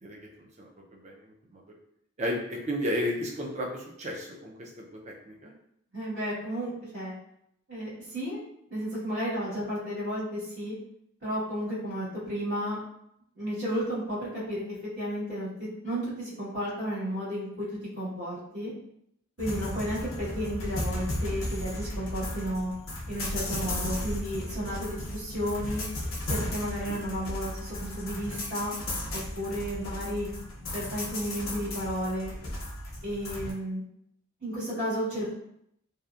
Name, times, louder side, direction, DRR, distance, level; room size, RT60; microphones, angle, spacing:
voice 1, 0.0-1.8 2.2-5.5 26.9-27.0, equal, 35° right, 0 dB, 0.4 m, -34 dB
voice 2, 5.9-7.1 7.7-8.4 8.7-10.7 11.2-12.8 13.3-14.6 15.0-18.7 19.4-22.7 23.1-25.8 26.2-28.7 29.1-30.3 30.7-32.3 33.0-33.8 34.4-35.3, equal, 60° right, -15 dB, 1.3 m, -33 dB
sound 1, 19.4-33.5, left 1 dB, 85° left, 0.7 m, -35 dB
2.8 x 2.1 x 2.3 m, 0.75 s
head